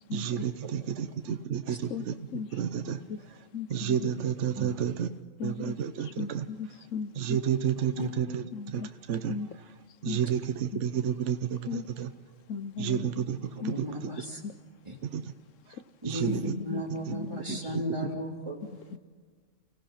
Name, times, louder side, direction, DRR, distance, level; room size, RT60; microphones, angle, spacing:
voice 1, 0.1-3.0 3.3-3.4 3.7-5.1 5.4-6.5 7.2-9.4 10.0-12.1 12.8-14.1 15.0-15.3 16.0-16.5 17.1-17.2 17.5-17.8, right 9 dB, 65° right, 9 dB, 1.1 m, -31 dB
voice 2, 3.5-4.3 5.4-5.8 6.0-7.4 8.5-8.9 9.3-9.5 10.1-10.2 10.7-10.8 11.7-11.9 12.5-13.1 13.6-13.7 14.4-14.5 16.3-16.8 17.1-17.6 18.6-19.0, left 6 dB, 70° left, 13 dB, 1.1 m, -36 dB
voice 3, 13.6-14.4 14.9-15.0 16.0-18.6, equal, 20° right, -1 dB, 3.6 m, -35 dB
30.0 x 16.5 x 5.8 m, 1.5 s
omnidirectional pair, 1.4 m